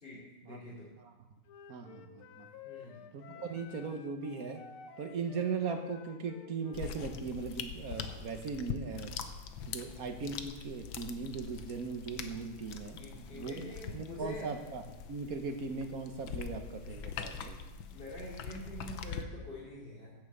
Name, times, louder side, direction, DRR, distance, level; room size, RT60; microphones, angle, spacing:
voice 1, 0.0-0.9 2.6-3.1 13.0-14.5 17.9-20.1, equal, 25° left, -7 dB, 2.9 m, -46 dB
Wind instrument woodwind instrument, 1.5-6.9, left 9 dB, 90° left, 1.7 m, -52 dB
voice 2, 1.7-2.5 3.1-4.6 5.0-9.1 9.7-13.0 13.3-13.6 13.9-14.8 15.1-17.6, right 5 dB, 50° right, 6 dB, 1.3 m, -38 dB
sound 1, 6.7-19.2, left 7 dB, 70° left, 1.5 m, -43 dB
11.5 x 7.4 x 7.9 m, 1.1 s
omnidirectional pair, 2.3 m